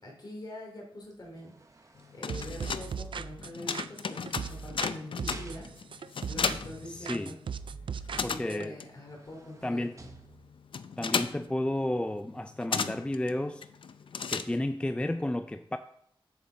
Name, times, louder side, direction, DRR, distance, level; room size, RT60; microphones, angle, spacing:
voice 1, 0.0-7.4 8.1-10.1, left 1 dB, 50° left, 0 dB, 2.7 m, -45 dB
sound 1, 1.0-3.3 4.1-6.1 8.3-8.4 8.8-10.8 11.4-11.5, right 3 dB, 35° right, 0.9 m, -53 dB
sound 2, 2.0-7.6 7.8-14.9, left 6 dB, 65° left, 0.4 m, -36 dB
sound 3, 2.3-4.9 5.2-6.8 7.0-8.7, right 6 dB, 65° right, 0.3 m, -38 dB
voice 2, 6.8-7.4 8.2-8.8 9.6-9.9 11.0-13.7 14.3-15.8, left 1 dB, 10° left, 8 dB, 0.4 m, -32 dB
7.4 x 7.2 x 3.9 m, 0.68 s
wide cardioid pair, 95°, 9 cm